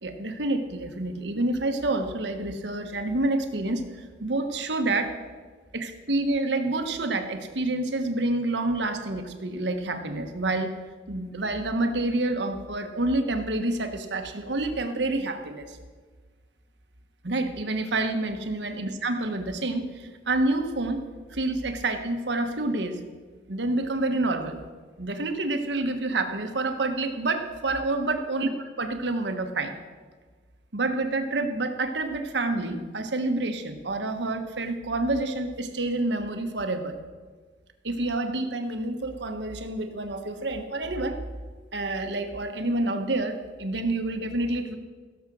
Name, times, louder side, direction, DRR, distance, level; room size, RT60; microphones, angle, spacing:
voice 1, 0.0-3.8 4.2-5.1 5.7-10.7 11.1-15.8 17.2-21.0 21.3-23.0 23.5-24.6 25.0-28.5 28.8-29.7 30.7-36.9 37.8-41.2 41.7-44.8, right 2 dB, 70° right, 6 dB, 1.3 m, -28 dB
16.0 x 7.3 x 6.2 m, 1.5 s
head